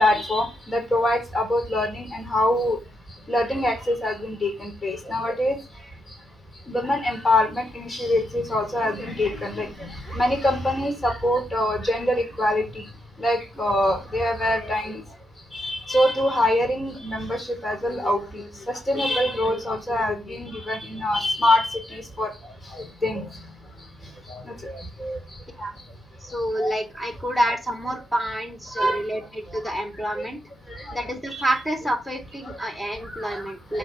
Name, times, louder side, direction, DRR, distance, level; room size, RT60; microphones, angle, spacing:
voice 1, 0.0-2.8 3.3-5.6 6.7-12.8 13.2-15.0 15.5-22.3 22.7-23.2 24.3-25.2 26.6-26.7 28.8-29.0 30.2-30.3 30.7-30.8 31.3-31.4 33.1-33.4 33.7-33.8, left 1 dB, 25° left, 2 dB, 4.3 m, -24 dB
voice 2, 26.2-30.4 30.9-33.8, right 1 dB, ahead, 5 dB, 3.3 m, -28 dB
8.0 x 5.1 x 6.4 m, 0.28 s
cardioid pair, 90°, 0 cm